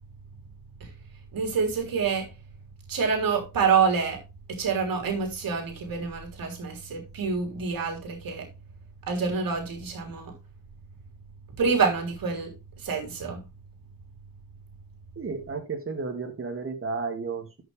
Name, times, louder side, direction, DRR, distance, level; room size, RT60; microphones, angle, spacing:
voice 1, 1.3-2.3 2.9-4.2 4.5-8.5 9.1-10.3 11.6-13.4, right 5 dB, 85° right, 3.6 m, -27 dB
voice 2, 15.2-17.6, right 4 dB, 40° right, 2.4 m, -33 dB
12.5 x 6.4 x 3.4 m
cardioid pair, 90°, 34 cm